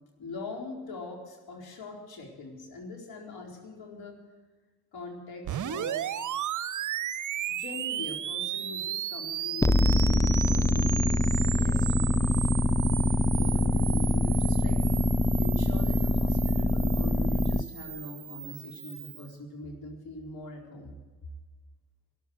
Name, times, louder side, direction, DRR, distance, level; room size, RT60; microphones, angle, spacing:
voice 1, 0.2-4.2 4.9-6.1 7.5-12.4 13.3-14.8 15.4-20.9, left 2 dB, 60° left, 0 dB, 4.3 m, -42 dB
sound 1, 5.4-19.3, right 11 dB, 45° right, 0.8 m, -35 dB
sound 2, 9.6-17.6, left 2 dB, 10° left, 0.5 m, -24 dB
13.0 x 11.0 x 7.8 m, 1.3 s
hypercardioid pair, 55°, 41 cm